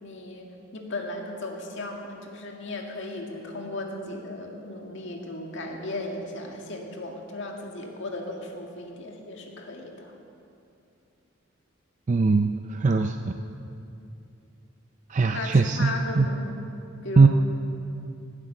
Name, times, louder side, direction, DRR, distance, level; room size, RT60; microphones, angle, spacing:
voice 1, 0.0-10.1 15.3-16.5 17.0-17.3, left 2 dB, 65° left, 1 dB, 2.0 m, -36 dB
voice 2, 12.1-13.3 15.1-16.3 17.2-17.3, right 4 dB, 40° right, 6 dB, 0.4 m, -20 dB
17.0 x 9.9 x 6.6 m, 2.7 s
head